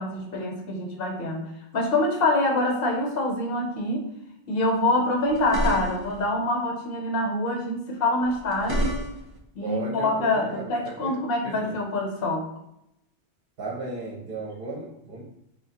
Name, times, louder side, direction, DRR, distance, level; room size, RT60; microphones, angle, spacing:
voice 1, 0.0-1.5 1.7-4.1 4.5-9.0 9.5-12.4, left 2 dB, 60° left, 2 dB, 0.9 m, -25 dB
sound 1, 5.3-6.2 8.2-9.4, equal, 25° right, 0.5 m, -29 dB
voice 2, 9.6-11.1 11.4-11.7 13.6-15.2, right 3 dB, 55° right, -4 dB, 0.8 m, -35 dB
3.2 x 2.2 x 4.1 m, 0.82 s
omnidirectional pair, 1.2 m